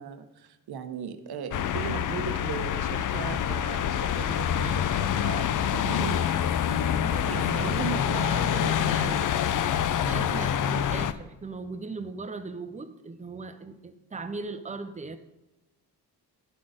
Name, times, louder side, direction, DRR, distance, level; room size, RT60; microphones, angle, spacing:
voice 1, 0.0-6.2 7.2-9.3, right 6 dB, 65° right, 9 dB, 0.8 m, -37 dB
sound 1, 1.5-11.1, left 9 dB, 50° left, 0.5 m, -26 dB
voice 2, 4.6-5.2 6.7-7.9 8.3-9.3 10.1-15.2, right 3 dB, 20° right, 9 dB, 0.6 m, -39 dB
11.0 x 4.1 x 4.9 m, 0.99 s
cardioid pair, 90°, 41 cm